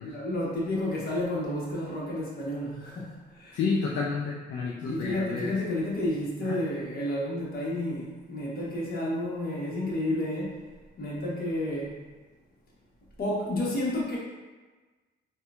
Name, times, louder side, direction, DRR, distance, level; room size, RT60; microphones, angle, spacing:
voice 1, 0.0-3.6 4.9-10.6 11.0-12.0 13.2-14.2, left 1 dB, 50° left, -5 dB, 1.1 m, -31 dB
voice 2, 3.5-5.5 6.4-6.6, left 4 dB, 70° left, -3 dB, 0.4 m, -30 dB
4.3 x 2.3 x 2.4 m, 1.3 s
cardioid pair, 90°, 20 cm